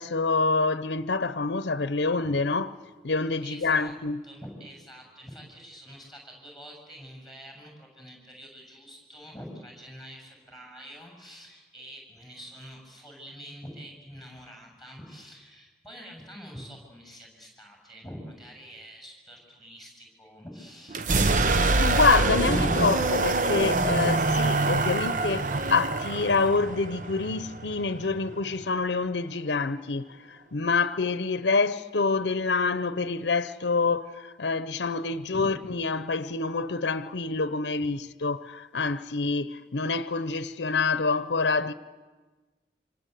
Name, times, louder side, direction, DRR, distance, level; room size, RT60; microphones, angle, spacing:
voice 1, 0.0-2.7 3.0-4.2 21.7-41.7, left 4 dB, 80° left, 0.8 m, -27 dB
voice 2, 3.4-3.9 4.2-21.7 22.4-22.9 35.3-35.5 37.8-37.9, equal, ahead, 7.6 m, -45 dB
sound 1, 20.9-28.6, right 3 dB, 45° right, 0.8 m, -25 dB
26.0 x 26.0 x 8.3 m
head